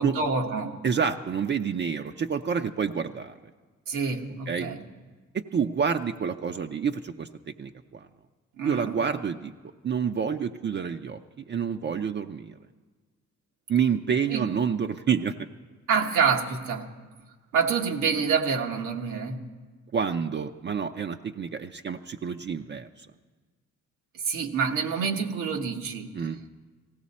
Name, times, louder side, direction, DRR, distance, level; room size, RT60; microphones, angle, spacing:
voice 1, 0.0-0.8 3.9-4.8 8.6-8.9 14.3-14.5 15.9-16.9 17.5-19.5 24.2-26.1, right 5 dB, 90° right, 2 dB, 1.3 m, -27 dB
voice 2, 0.8-3.5 4.5-4.7 5.3-8.1 8.6-9.5 9.8-12.5 13.7-15.5 19.9-23.1 26.1-26.4, right 7 dB, 35° right, 5 dB, 0.5 m, -28 dB
18.0 x 15.5 x 4.2 m, 1.4 s
cardioid pair, 90°, 30 cm